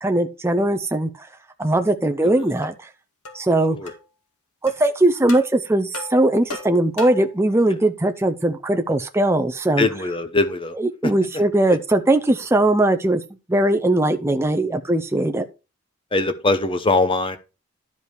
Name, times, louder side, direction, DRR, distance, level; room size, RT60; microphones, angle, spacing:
voice 1, 0.0-1.3 1.6-2.8 3.3-3.8 4.6-9.9 10.8-13.2 13.5-15.5, right 1 dB, 10° right, 0.6 m, -20 dB
sound 1, 2.6-2.7 3.2-3.4 3.9-4.0 4.7-4.8 5.3-5.5 5.9-7.3, left 3 dB, 80° left, 2.2 m, -35 dB
voice 2, 9.8-10.7 11.0-11.1 16.1-17.4, left 2 dB, 25° left, 0.9 m, -21 dB
11.0 x 5.3 x 4.7 m
head